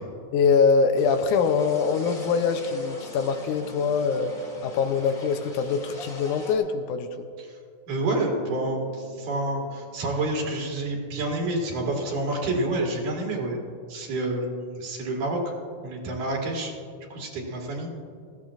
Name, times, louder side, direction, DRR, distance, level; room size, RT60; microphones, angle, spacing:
voice 1, 0.3-4.3 4.6-7.3, left 5 dB, 80° left, 7 dB, 2.1 m, -23 dB
sound 1, 0.9-6.5, left 2 dB, 25° left, 1.2 m, -43 dB
voice 2, 7.9-13.6 13.9-15.5 15.8-16.7 17.1-17.9, right 2 dB, 70° right, 0 dB, 3.4 m, -28 dB
sound 2, 8.3-11.9, right 2 dB, 40° right, 1.3 m, -44 dB
20.0 x 15.0 x 2.5 m, 2.3 s
omnidirectional pair, 3.7 m